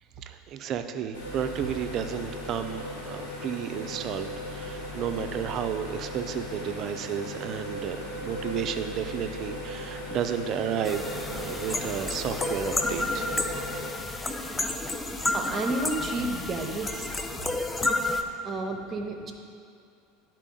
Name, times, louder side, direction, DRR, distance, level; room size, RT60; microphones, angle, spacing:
voice 1, 0.2-13.3, right 8 dB, 45° right, 8 dB, 0.5 m, -32 dB
sound 1, 1.1-13.9, left 1 dB, 90° left, 1.9 m, -37 dB
sound 2, 10.8-18.2, left 2 dB, 15° left, 0.6 m, -30 dB
voice 2, 15.3-17.1 18.4-19.3, right 2 dB, 30° right, 3 dB, 0.9 m, -31 dB
11.0 x 4.5 x 3.8 m, 2.4 s
hypercardioid pair, 85°, 0 cm